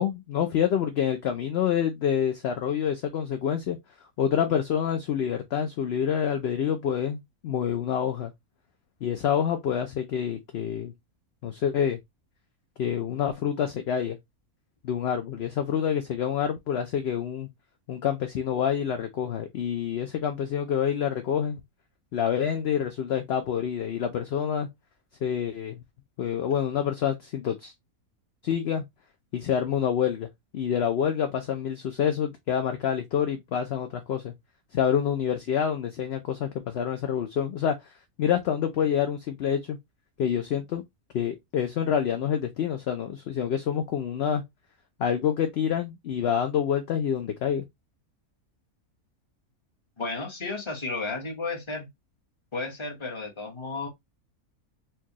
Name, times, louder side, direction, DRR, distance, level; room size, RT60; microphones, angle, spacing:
voice 1, 0.0-3.8 4.2-8.3 9.0-10.9 11.4-12.0 12.8-14.2 14.8-17.5 17.9-21.6 22.1-24.7 25.2-25.8 26.2-27.7 28.4-28.8 29.3-30.3 30.5-34.3 34.7-37.8 38.2-39.8 40.2-40.8 41.1-44.4 45.0-47.6, left 8 dB, 60° left, 0.7 m, -27 dB
voice 2, 50.0-51.9 52.5-53.9, left 3 dB, 20° left, 1.0 m, -33 dB
4.5 x 2.3 x 2.8 m
omnidirectional pair, 1.5 m